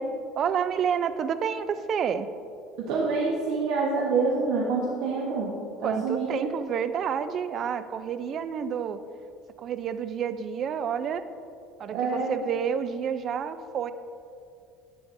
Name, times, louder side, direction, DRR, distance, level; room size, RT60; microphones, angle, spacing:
voice 1, 0.4-2.3 5.8-9.0 9.6-11.2 11.8-13.9, right 7 dB, 35° right, 12 dB, 0.3 m, -29 dB
voice 2, 2.8-5.5 5.8-6.5 11.9-12.3, right 4 dB, 70° right, -4 dB, 1.1 m, -27 dB
11.5 x 8.4 x 2.6 m, 2.5 s
cardioid pair, 170°, 0 cm